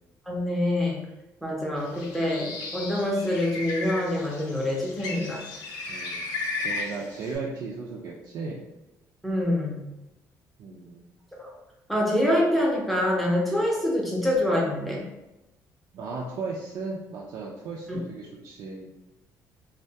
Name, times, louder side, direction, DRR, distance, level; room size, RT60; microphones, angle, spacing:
voice 1, 0.3-1.0 1.4-5.4 9.2-9.8 11.4-11.5 11.9-15.0 17.9-18.0, left 1 dB, ahead, -3 dB, 0.5 m, -25 dB
Bird, 1.8-7.4, left 3 dB, 90° left, 0.5 m, -35 dB
voice 2, 5.9-6.3 6.6-8.7 10.6-11.1 15.9-18.9, right 4 dB, 55° right, -3 dB, 0.4 m, -36 dB
2.2 x 2.2 x 2.7 m, 0.99 s
cardioid pair, 150°, 7 cm